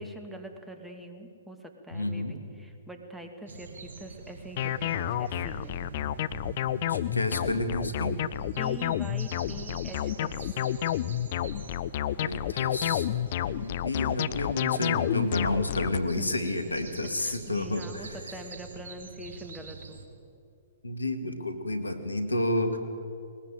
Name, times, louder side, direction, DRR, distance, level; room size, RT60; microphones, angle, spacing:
voice 1, 0.0-5.8 8.6-10.7 16.2-16.7 17.2-20.0, right 1 dB, 5° right, 5 dB, 2.4 m, -44 dB
voice 2, 1.9-2.3 6.9-8.2 12.2-13.1 13.4-18.2 20.8-22.8, left 1 dB, 85° left, 8 dB, 2.0 m, -30 dB
sound 1, 3.5-20.1, right 4 dB, 65° right, 3.0 m, -45 dB
sound 2, 4.6-16.0, left 12 dB, 50° left, 0.6 m, -30 dB
sound 3, 7.6-18.0, left 2 dB, 25° left, 6.7 m, -53 dB
20.5 x 20.0 x 9.0 m, 2.4 s
figure-of-eight pair, 115°, 0 cm